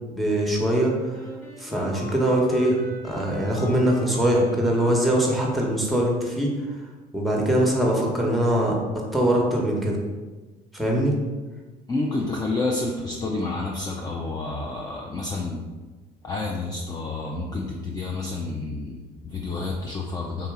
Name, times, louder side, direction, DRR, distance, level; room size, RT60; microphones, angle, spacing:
voice 1, 0.1-0.9 1.6-6.5 7.1-8.8 9.1-10.0 10.7-11.2, right 1 dB, ahead, -2 dB, 1.0 m, -22 dB
Wind instrument woodwind instrument, 1.1-6.2, equal, 50° left, 0.9 m, -39 dB
voice 2, 11.9-15.6 16.2-20.5, left 3 dB, 20° left, -1 dB, 0.5 m, -29 dB
4.0 x 2.7 x 3.6 m, 1.3 s
supercardioid pair, 90°, 18 cm